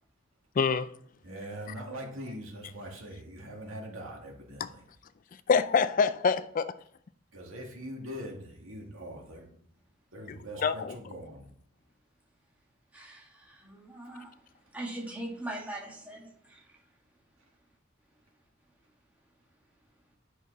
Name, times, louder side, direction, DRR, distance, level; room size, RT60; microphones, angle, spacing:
voice 1, 0.6-0.9 5.5-6.7 10.3-10.9, left 5 dB, 40° left, 0.3 m, -26 dB
voice 2, 1.2-4.8 7.3-9.5 10.1-11.5, equal, 80° right, 2.2 m, -42 dB
voice 3, 12.9-14.3 14.7-16.8, right 1 dB, 5° right, 1.8 m, -41 dB
9.6 x 6.1 x 4.0 m
head